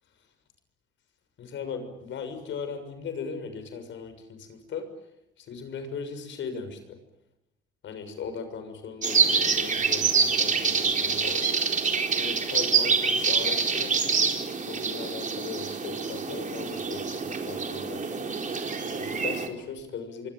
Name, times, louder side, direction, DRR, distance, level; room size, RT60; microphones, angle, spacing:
voice 1, 1.4-4.9 5.4-7.0 7.8-11.5 12.2-14.0 14.7-18.2 18.9-20.3, left 5 dB, 70° left, 8 dB, 6.7 m, -38 dB
sound 1, 9.0-19.5, right 5 dB, 40° right, 4.3 m, -26 dB
26.0 x 24.5 x 9.1 m, 0.87 s
cardioid pair, 90°, 20 cm